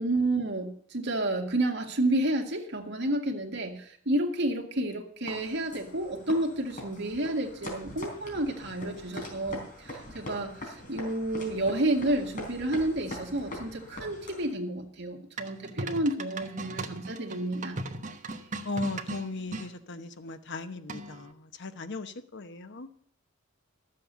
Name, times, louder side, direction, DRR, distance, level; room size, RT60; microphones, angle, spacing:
voice 1, 0.0-17.8, right 1 dB, 60° right, 1.9 m, -30 dB
sound 1, 5.3-14.5, left 1 dB, 40° left, 4.2 m, -42 dB
sound 2, 15.4-19.7 20.9-21.3, right 2 dB, 40° right, 1.1 m, -38 dB
voice 2, 18.6-23.0, left 2 dB, 60° left, 1.0 m, -37 dB
13.0 x 7.7 x 6.7 m
head